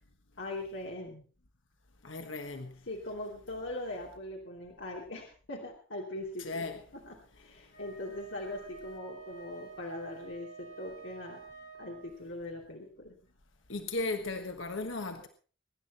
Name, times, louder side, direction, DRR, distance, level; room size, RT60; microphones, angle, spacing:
voice 1, 0.4-1.3 2.9-6.7 6.9-11.4 11.8-13.2, left 1 dB, 75° left, 2.9 m, -41 dB
voice 2, 2.0-2.8 6.4-6.8 13.7-15.3, left 3 dB, 90° left, 1.4 m, -36 dB
Wind instrument woodwind instrument, 7.7-12.3, right 5 dB, 55° left, 7.5 m, -49 dB
23.0 x 11.0 x 4.3 m
head